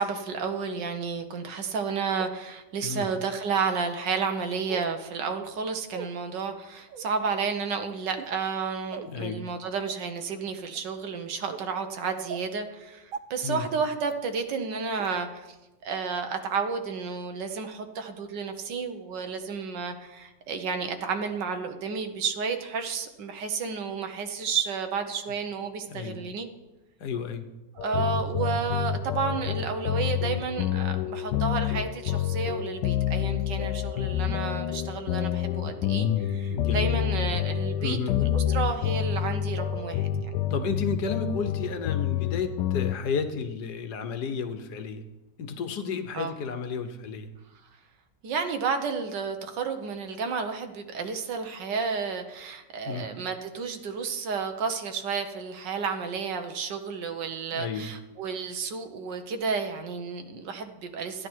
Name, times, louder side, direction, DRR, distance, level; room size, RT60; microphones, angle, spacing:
voice 1, 0.0-15.6 15.8-26.5 27.8-40.3 46.1-46.3 48.2-61.3, right 5 dB, 85° right, 6 dB, 1.7 m, -31 dB
sound 1, 2.2-2.3 3.2-3.3 4.7-4.9 5.9-6.1 6.9-7.1 8.1-8.3 8.9-9.1 9.9-10.0 10.6-10.8 11.5-11.6 12.3-12.4 13.1-13.2 14.1-14.2 15.0-15.1 15.9-16.0 16.5-16.6, right 7 dB, 65° right, 0.9 m, -38 dB
voice 2, 9.1-9.4 13.4-13.7 25.9-26.2 27.0-27.5 36.5-37.0 37.8-38.2 40.5-45.0 45.4-47.3 52.9-53.1 57.5-57.9, left 6 dB, 70° left, 8 dB, 1.5 m, -32 dB
sound 2, 27.8-43.0, left 10 dB, 90° left, 1.2 m, -28 dB
13.0 x 9.8 x 4.6 m, 1.0 s
omnidirectional pair, 1.8 m